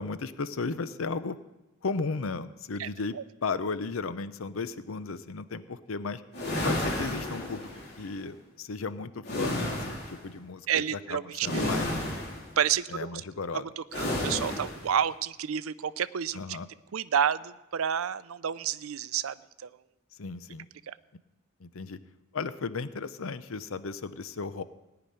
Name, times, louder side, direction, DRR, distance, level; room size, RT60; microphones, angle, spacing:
voice 1, 0.0-1.4 1.8-3.2 3.4-6.2 6.6-7.7 8.0-12.0 12.9-13.6 16.3-16.7 20.2-20.7 21.6-22.0 22.3-24.6, left 4 dB, 75° left, 13 dB, 0.7 m, -35 dB
sound 1, 6.3-7.9 9.2-10.2 11.4-12.5 13.9-14.9, left 1 dB, 50° left, 3.9 m, -31 dB
voice 2, 10.7-11.7 12.6-13.2 13.5-16.6 16.9-19.7 20.9-21.0, right 8 dB, 85° right, 16 dB, 0.5 m, -30 dB
17.5 x 5.9 x 10.0 m, 1.0 s
head